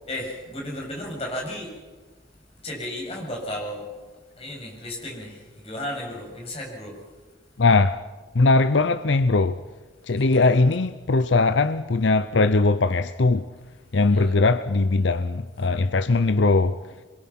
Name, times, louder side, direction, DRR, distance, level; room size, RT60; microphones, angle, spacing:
voice 1, 0.1-1.8 2.6-3.9 4.4-7.0 10.1-10.6 14.1-14.3, left 1 dB, 35° left, 7.6 m, -34 dB
voice 2, 7.6-8.0 8.3-9.6 10.1-13.4 13.9-16.8, left 3 dB, 80° left, 0.7 m, -20 dB
27.5 x 22.5 x 6.0 m
head